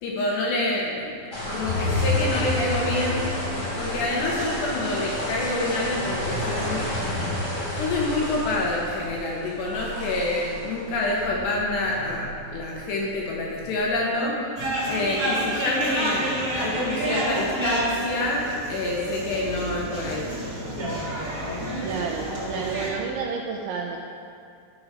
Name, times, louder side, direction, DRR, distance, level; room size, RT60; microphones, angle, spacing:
voice 1, 0.0-1.2 1.5-3.3 3.8-6.9 7.8-14.4 14.9-20.3, left 2 dB, 70° left, -3 dB, 2.8 m, -27 dB
sound 1, 1.3-13.9, left 1 dB, 30° left, 2.2 m, -30 dB
sound 2, 11.0-12.5 13.5-15.2 16.0-16.5, left 2 dB, 55° left, 2.3 m, -47 dB
sound 3, 14.5-22.9, right 1 dB, 30° right, 1.6 m, -29 dB
voice 2, 21.8-24.0, right 5 dB, 80° right, 1 dB, 2.7 m, -30 dB
13.0 x 6.2 x 5.0 m, 2.5 s
omnidirectional pair, 5.8 m